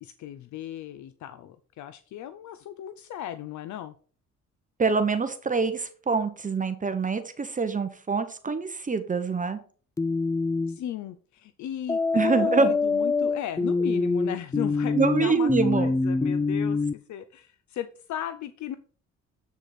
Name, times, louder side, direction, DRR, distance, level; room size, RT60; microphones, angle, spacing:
voice 1, 0.0-3.9 10.7-18.8, left 11 dB, 70° left, 12 dB, 0.6 m, -36 dB
voice 2, 4.8-9.6 12.1-12.7 14.9-15.9, right 4 dB, 25° right, 9 dB, 0.8 m, -25 dB
sound 1, 10.0-10.8 11.9-16.9, left 3 dB, 10° left, 0.3 m, -25 dB
8.2 x 4.9 x 4.2 m, 0.42 s
cardioid pair, 90°, 30 cm